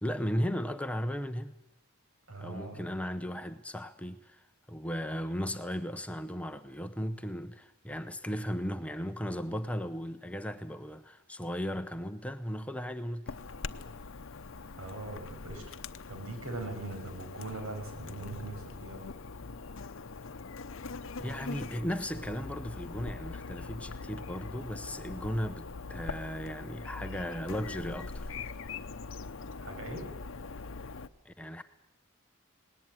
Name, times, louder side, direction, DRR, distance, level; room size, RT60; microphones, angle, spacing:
voice 1, 0.0-1.5 2.4-13.4 21.2-28.5 31.2-31.6, equal, 5° left, 0.7 m, -36 dB
voice 2, 2.3-2.9 14.8-15.6 16.1-19.1 29.6-30.1, right 2 dB, 80° right, 5.9 m, -41 dB
Chirp tweet / Buzz, 13.3-31.1, left 4 dB, 65° left, 0.8 m, -42 dB
19.0 x 19.0 x 9.1 m
head